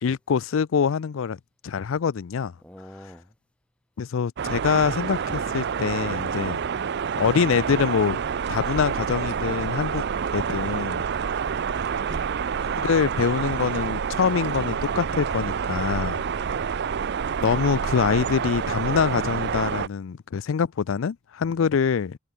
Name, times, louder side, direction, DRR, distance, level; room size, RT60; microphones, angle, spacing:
voice 1, 0.0-2.5 4.0-6.6 7.2-8.2 8.5-10.0 10.3-11.0 12.7-16.2 17.4-22.2, left 6 dB, 70° left, 0.4 m, -25 dB
voice 2, 2.6-3.3 6.6-6.7 11.6-11.8 12.1-12.3 16.3-16.8 21.4-21.8, equal, 5° left, 0.7 m, -46 dB
sound 1, 4.4-19.9, right 6 dB, 55° right, 0.5 m, -28 dB
sound 2, 4.7-19.8, right 4 dB, 85° right, 2.9 m, -61 dB
head